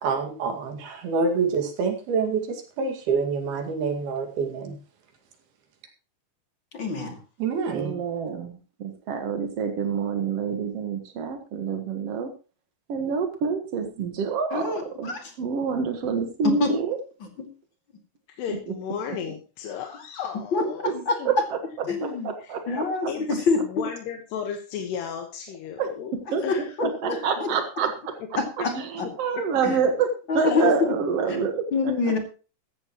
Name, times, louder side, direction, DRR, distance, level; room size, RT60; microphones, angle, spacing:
voice 1, 0.0-4.8 7.4-8.0, right 5 dB, 60° right, 5 dB, 3.8 m, -27 dB
voice 2, 6.7-7.2 14.5-15.3 16.4-16.7 17.2-17.5 20.3-21.4 21.9-22.3 22.7-23.9 26.3-27.5 28.3-29.1 29.6-29.8 30.3-30.7 31.3-31.4 31.7-32.2, left 4 dB, 35° left, 3 dB, 2.3 m, -26 dB
voice 3, 7.7-12.3 12.9-14.7 15.0-17.0 20.8-20.9 21.2-21.3 22.0-23.1 25.8-25.9 26.3-26.4 26.8-28.4 28.7-30.1 30.3-31.9, right 6 dB, 80° right, 5 dB, 1.3 m, -27 dB
voice 4, 18.3-21.3 22.4-22.8 23.1-23.3 23.6-26.1 26.4-27.2 28.6-28.7 29.3-29.4 30.4-30.8 31.2-31.4, left 8 dB, 70° left, 3 dB, 3.3 m, -34 dB
15.0 x 14.5 x 3.1 m, 0.34 s
omnidirectional pair, 5.3 m